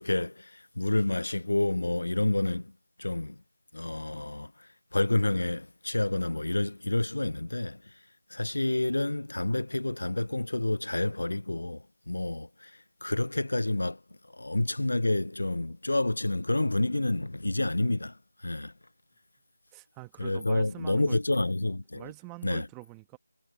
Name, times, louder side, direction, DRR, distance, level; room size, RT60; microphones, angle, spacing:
voice 1, 0.0-2.7 3.0-3.4 3.7-8.0 8.3-14.0 14.3-18.7 20.2-22.1 22.4-22.7, left 2 dB, 80° left, 0.4 m, -29 dB
voice 2, 19.7-21.5 21.9-23.2, right 24 dB, 10° right, 1.1 m, -45 dB
figure-of-eight pair, 170°, 0 cm